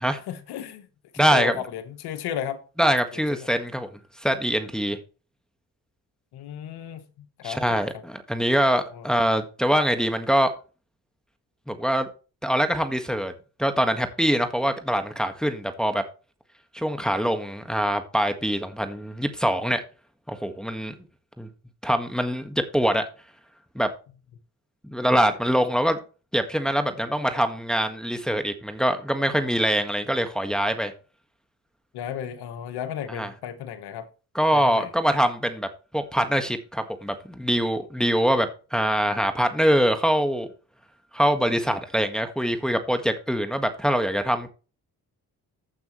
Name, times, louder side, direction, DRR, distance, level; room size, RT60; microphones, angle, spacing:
voice 1, 0.2-0.9 1.1-2.6 3.1-3.5 6.3-7.9 8.6-9.0 25.2-25.4 31.9-34.1 34.5-34.9, left 9 dB, 90° left, 1.3 m, -34 dB
voice 2, 1.2-1.5 2.8-3.9 4.2-5.0 7.4-10.5 11.7-12.1 12.4-13.3 13.6-16.0 16.7-19.8 20.3-20.9 21.4-21.5 21.8-23.0 23.7-23.9 24.8-26.0 26.3-30.9 33.1-33.3 34.3-35.7 35.9-40.5 41.1-44.5, equal, ahead, 1.6 m, -24 dB
14.5 x 6.0 x 3.1 m
cardioid pair, 65°, 38 cm